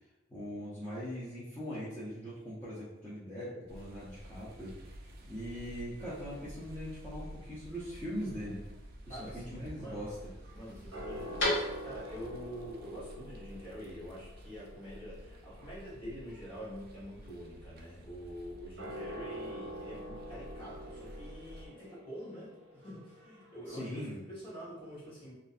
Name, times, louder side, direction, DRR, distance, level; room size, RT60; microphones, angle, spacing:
voice 1, 0.3-4.7 5.3-8.6 9.1-10.3 23.7-24.2, equal, 10° left, -13 dB, 0.6 m, -41 dB
sound 1, 3.7-12.2, left 1 dB, 70° left, 1.2 m, -42 dB
sound 2, 3.7-21.7, equal, 50° right, 0.3 m, -50 dB
voice 2, 9.1-10.0 10.5-25.3, equal, 30° left, -9 dB, 1.1 m, -46 dB
sound 3, 9.9-23.7, equal, 80° right, 0.7 m, -47 dB
2.5 x 2.2 x 2.4 m, 0.96 s
head